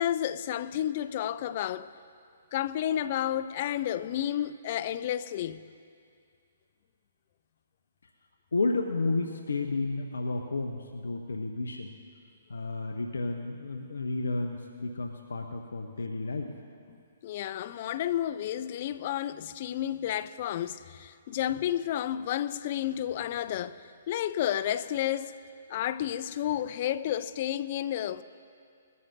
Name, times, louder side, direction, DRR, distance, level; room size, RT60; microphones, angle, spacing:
voice 1, 0.0-1.9 2.5-5.7 16.9-25.4 25.7-28.2, left 11 dB, 45° left, 0.4 m, -31 dB
voice 2, 8.5-11.9 12.5-16.5, left 3 dB, 75° left, 0.8 m, -32 dB
21.0 x 14.0 x 2.7 m
figure-of-eight pair, 130°, 0 cm